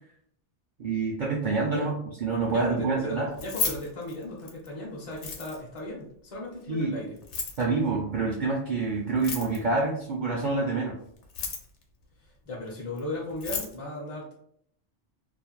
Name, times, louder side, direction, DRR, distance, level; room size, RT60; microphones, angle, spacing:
voice 1, 0.8-1.9 2.2-3.3 6.7-6.9 7.6-11.0, right 3 dB, 60° right, -1 dB, 0.5 m, -27 dB
voice 2, 2.5-7.2 12.5-14.3, left 1 dB, 40° left, -3 dB, 0.5 m, -36 dB
Keys jangling, 3.3-4.7 5.1-5.8 7.2-7.6 9.1-9.8 11.2-11.8 13.0-13.1 13.3-13.7, left 6 dB, 80° left, 0.9 m, -33 dB
2.4 x 2.0 x 2.9 m, 0.67 s
omnidirectional pair, 1.2 m